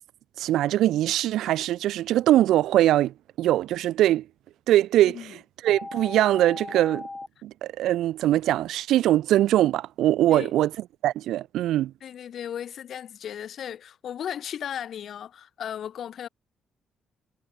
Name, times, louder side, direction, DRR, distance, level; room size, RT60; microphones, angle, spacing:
voice 1, 0.4-4.3 4.7-5.2 5.6-7.1 7.4-10.7 11.0-11.9, right 13 dB, 85° right, 0.8 m, -22 dB
voice 2, 5.0-5.4 10.2-10.5 12.0-16.3, left 9 dB, 65° left, 3.8 m, -36 dB
sound 1, 5.7-7.3, left 3 dB, 20° left, 0.7 m, -37 dB
cardioid pair, 90°, 0 cm